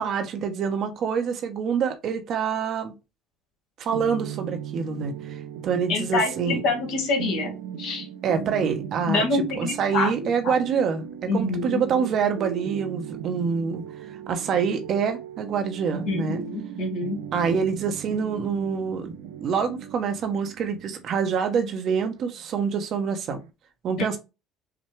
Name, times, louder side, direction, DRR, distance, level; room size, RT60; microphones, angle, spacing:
voice 1, 0.0-2.9 3.8-6.6 8.2-9.2 9.5-13.8 14.3-16.4 17.3-19.1 19.4-23.4 23.8-24.2, right 6 dB, 55° right, 0.8 m, -26 dB
sound 1, 3.9-23.5, right 9 dB, 85° right, 0.5 m, -37 dB
voice 2, 5.9-8.1 9.1-10.5 11.3-11.8 16.1-17.2, left 3 dB, 70° left, 1.8 m, -27 dB
5.9 x 2.2 x 3.2 m
supercardioid pair, 85°, 0 cm